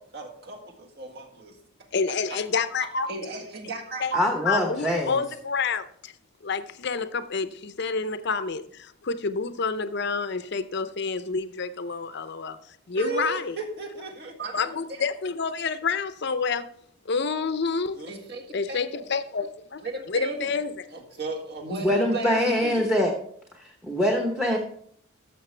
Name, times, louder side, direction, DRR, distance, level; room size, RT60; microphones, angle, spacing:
voice 1, 0.1-1.5 3.1-4.2 12.9-14.6 14.9-15.0 18.0-19.1 19.8-20.5 20.9-23.0, right 3 dB, 50° right, 1.7 m, -35 dB
voice 2, 1.9-3.1 4.0-4.1 4.5-6.1 6.4-13.6 14.5-16.7 17.1-18.0 18.5-20.9, left 5 dB, 50° left, 0.6 m, -28 dB
voice 3, 4.1-5.1 21.8-23.1 23.6-24.6, left 1 dB, 5° right, 0.9 m, -24 dB
13.0 x 6.5 x 3.3 m
head